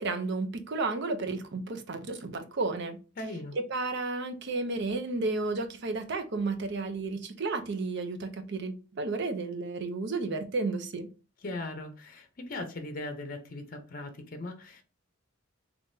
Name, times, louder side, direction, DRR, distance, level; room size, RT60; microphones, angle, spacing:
voice 1, 0.0-3.0 3.7-11.1, right 3 dB, 60° right, 0.6 m, -32 dB
voice 2, 3.2-3.6 11.4-14.8, left 2 dB, 45° left, 0.6 m, -39 dB
3.6 x 2.9 x 2.6 m
head